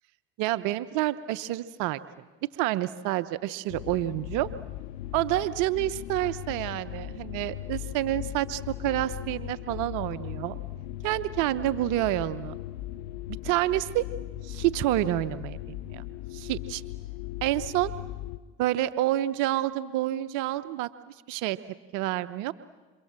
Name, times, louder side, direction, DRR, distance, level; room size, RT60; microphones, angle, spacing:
voice 1, 0.4-2.0 2.6-4.5 5.1-10.6 11.0-12.6 13.4-14.1 14.4-16.0 16.3-16.8 17.4-17.9 18.6-20.9 21.3-21.6 21.9-22.5, right 15 dB, 75° right, 14 dB, 0.8 m, -28 dB
sound 1, 3.7-18.4, left 14 dB, 80° left, 1.1 m, -38 dB
28.5 x 27.5 x 7.5 m, 1.3 s
hypercardioid pair, 60°, 31 cm